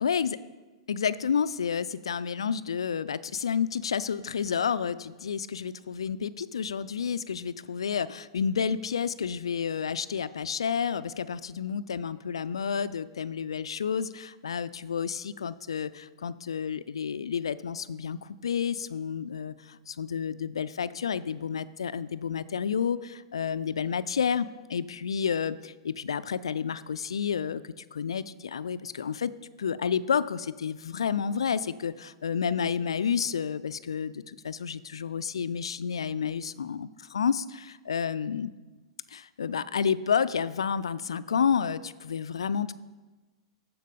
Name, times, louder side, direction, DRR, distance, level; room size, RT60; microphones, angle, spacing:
voice 1, 0.0-0.4 0.9-36.9 37.1-38.5 39.1-42.7, left 7 dB, 75° left, 16 dB, 0.3 m, -30 dB
13.5 x 4.6 x 5.1 m, 1.2 s
figure-of-eight pair, 100°, 3 cm